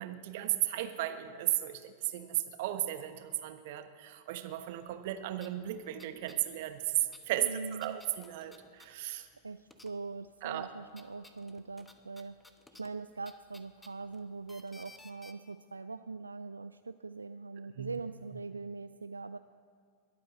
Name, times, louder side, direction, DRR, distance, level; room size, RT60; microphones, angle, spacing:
voice 1, 0.0-9.3 10.4-10.7 17.7-18.0, right 14 dB, 50° right, 9 dB, 1.1 m, -35 dB
sound 1, 5.0-5.1 5.3-6.4 6.7-9.4 9.7-10.3 10.6-15.3, left 1 dB, 5° left, 1.0 m, -58 dB
voice 2, 7.4-8.0 9.1-12.4 12.8-19.4, right 4 dB, 80° right, 12 dB, 0.3 m, -42 dB
22.0 x 8.6 x 7.6 m, 2.1 s
figure-of-eight pair, 90°, 0 cm